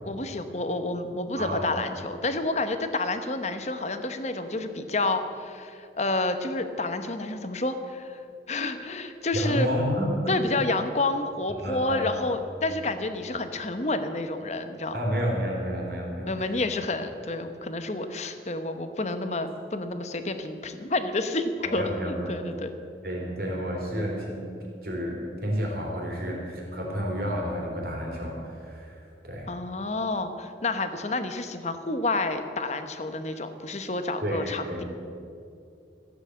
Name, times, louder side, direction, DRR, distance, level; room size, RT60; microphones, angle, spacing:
voice 1, 0.1-8.2 8.5-9.7 10.3-15.0 16.3-22.7 29.5-34.8, left 2 dB, 40° left, 9 dB, 1.0 m, -29 dB
voice 2, 1.4-1.7 9.3-10.4 11.6-12.2 12.7-12.8 14.9-16.5 21.6-22.3 23.0-24.4 24.8-29.5 34.2-34.8, equal, 60° right, -1 dB, 3.4 m, -30 dB
14.5 x 8.2 x 8.3 m, 2.5 s
head